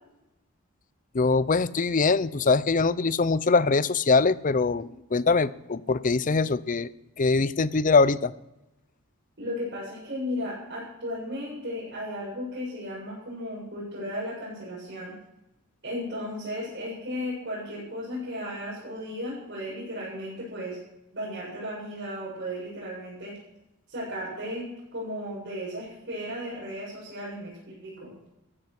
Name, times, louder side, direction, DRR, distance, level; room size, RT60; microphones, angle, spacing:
voice 1, 1.1-6.9 7.2-8.3, left 4 dB, 40° left, 17 dB, 0.6 m, -23 dB
voice 2, 9.4-15.2 15.8-20.8 21.1-23.4 23.9-28.1, equal, 55° right, -7 dB, 6.8 m, -35 dB
14.5 x 13.5 x 6.0 m, 0.93 s
head